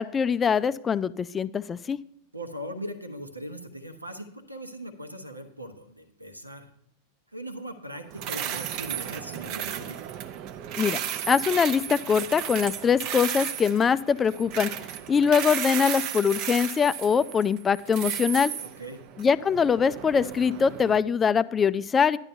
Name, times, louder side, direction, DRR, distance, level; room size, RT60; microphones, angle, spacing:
voice 1, 0.0-2.0 10.8-11.0 11.3-14.7 15.1-18.5 19.2-22.2, left 6 dB, 20° left, 15 dB, 0.3 m, -23 dB
voice 2, 2.3-6.7 7.3-10.0 18.6-19.0, equal, 85° right, 7 dB, 1.0 m, -39 dB
sound 1, 8.1-21.0, right 10 dB, 40° right, 0.6 m, -34 dB
12.5 x 10.5 x 2.7 m, 0.67 s
figure-of-eight pair, 90°, 0 cm